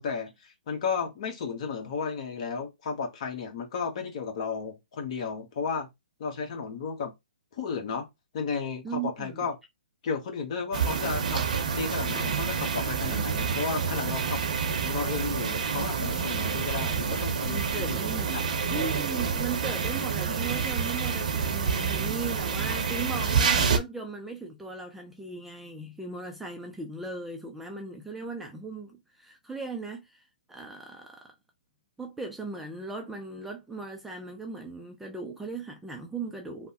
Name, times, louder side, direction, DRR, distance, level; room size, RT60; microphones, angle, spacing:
voice 1, 0.0-5.9 6.2-7.1 7.5-8.1 8.3-9.5 10.0-11.4 11.7-14.4 14.8-18.0 18.3-18.4, left 5 dB, 45° left, 1.1 m, -33 dB
voice 2, 8.8-9.5 17.4-18.4 18.7-31.3 32.0-36.7, right 4 dB, 5° right, 0.4 m, -38 dB
sound 1, 10.7-23.8, right 6 dB, 60° right, 0.7 m, -28 dB
3.2 x 2.1 x 2.8 m
hypercardioid pair, 140°, 5 cm